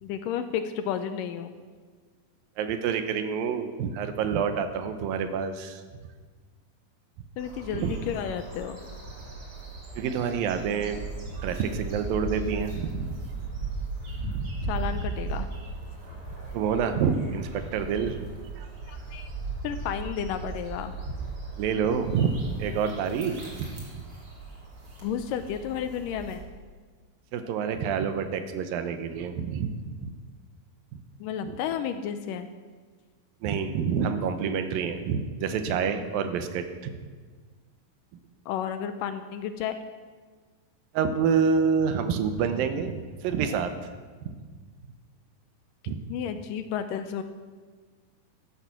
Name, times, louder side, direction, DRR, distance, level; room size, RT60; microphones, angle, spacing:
voice 1, 0.0-1.5 7.4-8.8 14.7-15.5 18.9-19.3 19.6-20.9 25.0-26.4 31.2-32.5 38.5-39.7 46.1-47.2, left 8 dB, 80° left, 9 dB, 2.1 m, -32 dB
voice 2, 2.6-5.8 7.8-7.9 10.0-11.0 11.3-13.1 14.2-14.5 16.5-18.3 18.6-18.7 21.6-23.8 27.3-30.1 30.9-31.0 31.4-31.6 33.4-36.9 40.9-43.8 44.2-44.4 45.9-46.0, right 6 dB, 80° right, 9 dB, 2.6 m, -28 dB
sound 1, 7.4-26.4, right 3 dB, 40° right, 3.3 m, -37 dB
13.5 x 11.5 x 6.0 m, 1.5 s
omnidirectional pair, 4.2 m